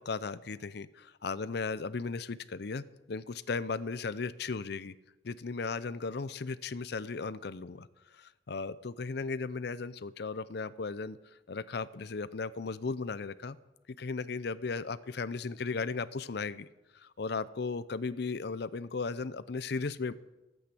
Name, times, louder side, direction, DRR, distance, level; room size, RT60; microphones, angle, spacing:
voice 1, 0.1-2.8 3.1-4.9 5.2-7.9 8.1-11.2 11.5-13.6 14.0-16.7 16.9-20.1, left 4 dB, 65° left, 16 dB, 0.6 m, -36 dB
14.0 x 8.6 x 7.8 m, 1.0 s
head